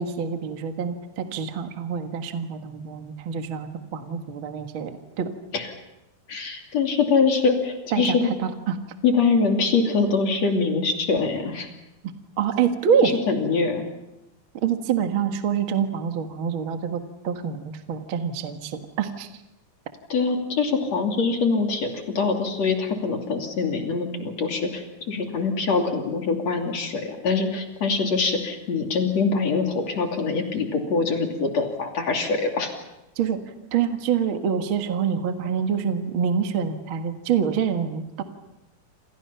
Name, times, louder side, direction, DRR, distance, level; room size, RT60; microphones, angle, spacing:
voice 1, 0.0-5.3 7.9-8.8 12.4-13.1 14.5-19.3 33.1-33.4 33.7-38.2, right 7 dB, 50° right, 6 dB, 1.5 m, -26 dB
voice 2, 6.3-8.3 9.0-11.7 13.0-13.8 20.1-21.9 22.2-32.7, left 4 dB, 45° left, 3 dB, 3.6 m, -24 dB
29.0 x 27.0 x 5.7 m, 0.92 s
omnidirectional pair, 4.6 m